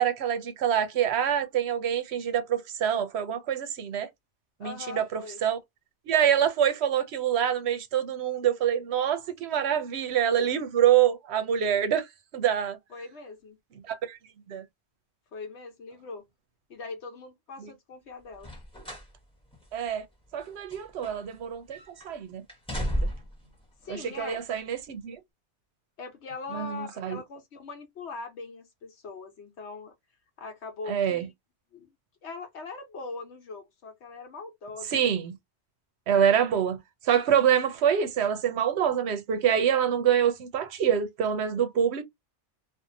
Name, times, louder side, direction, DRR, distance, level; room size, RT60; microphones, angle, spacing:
voice 1, 0.0-4.1 4.6-5.6 6.1-12.1 12.3-12.8 13.9-14.2 14.5-14.6 17.6-17.7 19.7-20.0 20.3-21.8 22.0-22.4 22.7-23.1 23.9-25.2 26.5-27.2 30.9-31.2 34.9-35.3 36.1-36.8 37.0-42.0, right 9 dB, 70° right, 0.8 m, -26 dB
voice 2, 4.6-5.4 12.9-13.6 15.3-16.3 16.7-18.5 23.8-24.4 26.0-29.9 30.4-31.3 31.7-31.9 32.2-35.0, left 4 dB, 70° left, 1.1 m, -41 dB
sound 1, 18.4-19.1 19.5-19.7 20.4-21.4 21.7-22.1 22.5-23.4 24.3-24.4, equal, 5° left, 0.9 m, -33 dB
2.6 x 2.4 x 2.6 m
omnidirectional pair, 1.2 m